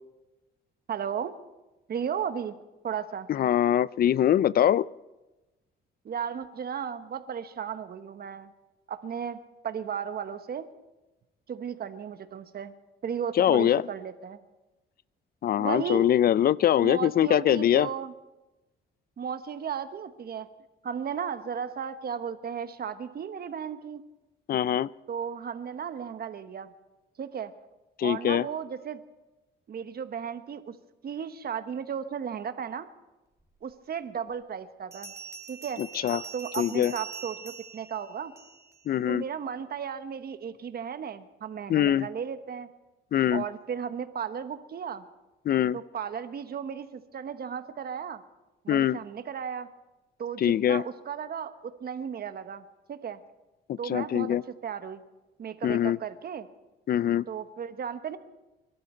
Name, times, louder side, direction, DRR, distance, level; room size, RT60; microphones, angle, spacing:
voice 1, 0.9-1.3 1.9-2.5 2.8-3.3 6.0-8.5 8.9-10.7 11.5-12.7 13.0-14.4 15.6-16.1 16.8-18.1 19.2-20.5 20.8-24.0 25.1-26.7 27.2-27.5 28.0-29.0 29.7-30.8 31.0-32.9 33.6-35.1 35.5-35.8 36.1-38.3 39.1-42.7 43.3-45.0 45.7-48.2 48.6-49.7 50.2-53.2 53.8-55.0 55.4-56.5 57.3-58.2, right 7 dB, 50° right, 10 dB, 1.1 m, -35 dB
voice 2, 3.3-4.9 13.4-13.8 15.4-17.9 24.5-24.9 28.0-28.5 35.8-36.2 36.6-36.9 38.9-39.2 41.7-42.1 43.1-43.4 45.5-45.8 48.7-49.0 50.4-50.8 53.7-54.4 55.6-56.0 56.9-57.2, left 10 dB, 50° left, 21 dB, 0.4 m, -23 dB
Bell, 33.7-33.8 34.9-38.8, right 5 dB, 15° right, 2.1 m, -43 dB
23.5 x 12.0 x 4.4 m, 1.0 s
cardioid pair, 90°, 20 cm